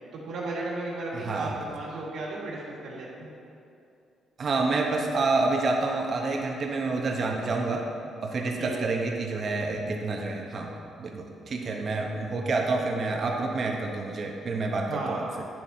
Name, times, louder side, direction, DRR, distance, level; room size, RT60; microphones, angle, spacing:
voice 1, 0.1-3.3 8.6-8.9 14.9-15.2, right 2 dB, 75° right, -4 dB, 1.9 m, -35 dB
voice 2, 1.1-1.5 4.4-7.8 8.2-10.7 11.0-15.3, right 3 dB, 50° right, 1 dB, 0.9 m, -28 dB
10.0 x 7.3 x 2.8 m, 2.6 s
cardioid pair, 90°, 0 cm